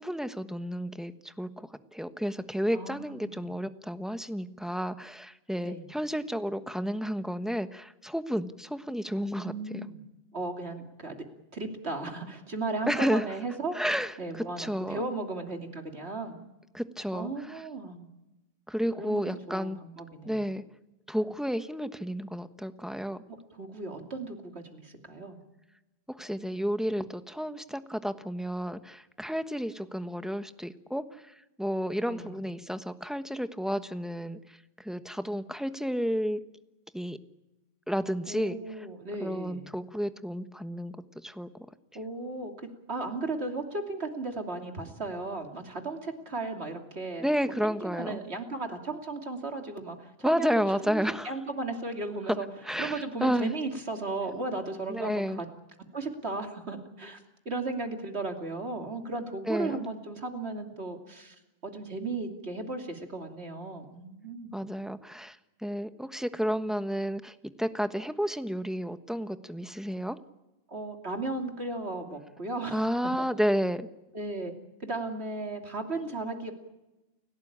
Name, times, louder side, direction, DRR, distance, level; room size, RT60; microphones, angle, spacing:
voice 1, 0.0-9.5 12.9-13.3 13.7-15.1 16.7-17.6 18.7-19.8 20.2-20.6 21.1-23.2 26.1-31.2 31.6-36.4 36.9-37.2 37.9-38.9 39.2-41.5 47.2-48.2 50.2-51.3 52.6-53.5 54.9-55.4 59.3-59.8 64.5-65.4 65.6-70.2 72.7-73.9, equal, ahead, 9 dB, 1.1 m, -31 dB
voice 2, 2.7-3.5 5.6-5.9 9.3-10.0 10.3-11.2 11.5-13.8 14.2-16.4 17.1-18.1 19.0-20.4 23.6-25.4 32.1-32.3 38.3-39.8 41.9-42.5 42.9-47.3 47.6-50.6 50.9-52.5 52.8-55.5 55.9-57.2 57.4-61.3 61.6-64.5 70.7-72.8 73.2-73.3 74.1-74.5 74.8-76.5, right 3 dB, 90° right, 4 dB, 3.2 m, -35 dB
30.0 x 17.0 x 8.8 m, 0.98 s
omnidirectional pair, 1.1 m